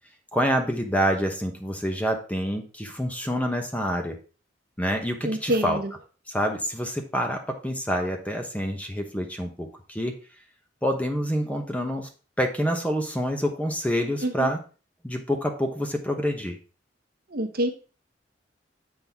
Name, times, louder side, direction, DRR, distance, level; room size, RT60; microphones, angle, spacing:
voice 1, 0.3-4.1 4.8-5.8 6.3-10.1 10.8-12.1 12.4-14.6 15.0-16.6, equal, 10° left, 3 dB, 1.1 m, -27 dB
voice 2, 5.2-5.8 14.2-14.5 17.3-17.7, right 1 dB, 55° right, 6 dB, 1.0 m, -26 dB
7.6 x 6.1 x 3.6 m, 0.36 s
head